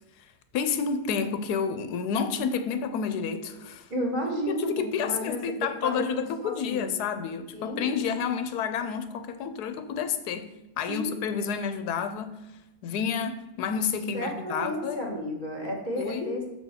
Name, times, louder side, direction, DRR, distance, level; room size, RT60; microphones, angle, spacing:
voice 1, 0.2-3.9 4.5-10.5 10.8-12.4 12.8-15.0 16.0-16.5, left 6 dB, 90° left, 10 dB, 1.2 m, -30 dB
voice 2, 3.9-4.7 5.0-6.9 7.5-7.9 10.9-11.2 14.1-16.4, equal, 30° right, -1 dB, 1.6 m, -32 dB
6.7 x 4.5 x 5.6 m, 0.95 s
omnidirectional pair, 1.6 m